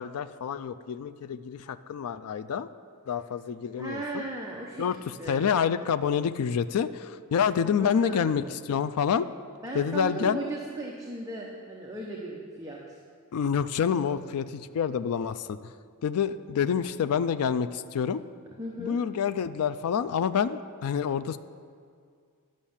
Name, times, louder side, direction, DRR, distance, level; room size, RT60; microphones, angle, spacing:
voice 1, 0.0-2.7 3.1-4.2 4.8-9.3 9.7-10.4 13.3-15.7 16.0-18.2 18.8-21.4, left 7 dB, 75° left, 11 dB, 0.4 m, -28 dB
voice 2, 3.7-4.8 5.2-5.5 7.6-8.3 9.6-13.0 18.6-19.0, right 2 dB, 15° right, -3 dB, 0.9 m, -36 dB
11.5 x 6.4 x 7.2 m, 2.2 s
head